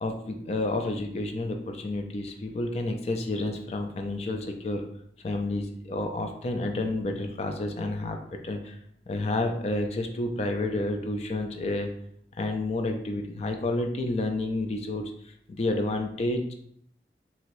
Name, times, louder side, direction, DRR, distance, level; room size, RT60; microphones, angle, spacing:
voice 1, 0.0-4.8 5.2-8.2 8.4-8.8 9.1-11.9 12.4-16.5, left 2 dB, 35° left, 4 dB, 0.3 m, -30 dB
2.8 x 2.5 x 3.0 m, 0.69 s
head